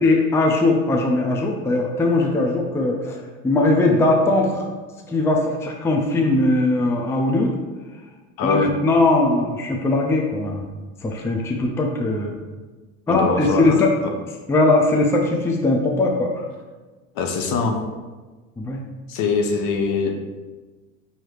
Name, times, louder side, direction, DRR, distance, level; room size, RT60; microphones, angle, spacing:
voice 1, 0.0-4.7 5.1-7.5 8.4-10.7 11.0-12.3 13.1-13.9 14.5-16.5 18.6-18.8, left 2 dB, 5° left, 0 dB, 0.5 m, -20 dB
voice 2, 8.4-8.7 13.1-13.7 17.1-17.8 19.1-20.2, left 4 dB, 55° left, 3 dB, 0.8 m, -22 dB
4.7 x 2.8 x 3.2 m, 1.3 s
hypercardioid pair, 85°, 39 cm